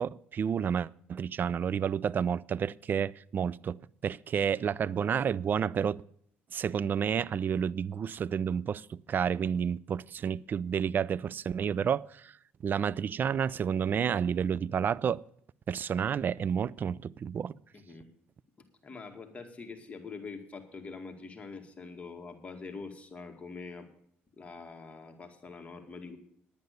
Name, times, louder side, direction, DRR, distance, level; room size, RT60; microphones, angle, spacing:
voice 1, 0.0-6.0 6.5-12.3 12.6-15.2 15.7-17.5, right 7 dB, 45° right, 0.4 m, -30 dB
voice 2, 17.7-18.1 18.6-23.9 24.4-26.2, left 4 dB, 30° left, 2.2 m, -44 dB
10.5 x 9.4 x 6.8 m
supercardioid pair, 85°, 4 cm